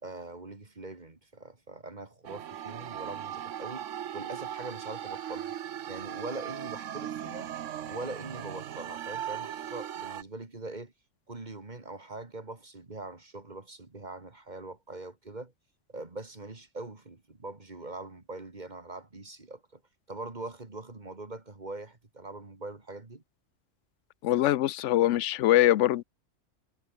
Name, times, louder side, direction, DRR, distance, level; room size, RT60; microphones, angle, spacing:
voice 1, 0.0-5.5 5.9-7.5 7.9-10.9 11.3-15.5 15.9-19.8 20.1-23.2, right 2 dB, 35° right, 2.3 m, -42 dB
sound 1, 2.2-10.2, right 10 dB, 75° right, 1.1 m, -38 dB
voice 2, 24.2-26.0, left 14 dB, 70° left, 0.9 m, -23 dB
omnidirectional pair, 1.3 m